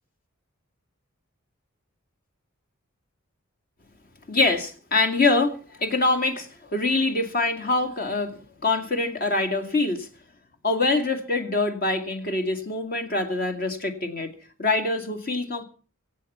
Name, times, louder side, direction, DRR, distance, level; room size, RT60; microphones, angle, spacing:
voice 1, 4.3-10.1 10.6-15.6, left 3 dB, 45° left, 7 dB, 2.3 m, -25 dB
24.0 x 8.8 x 5.6 m, 0.39 s
head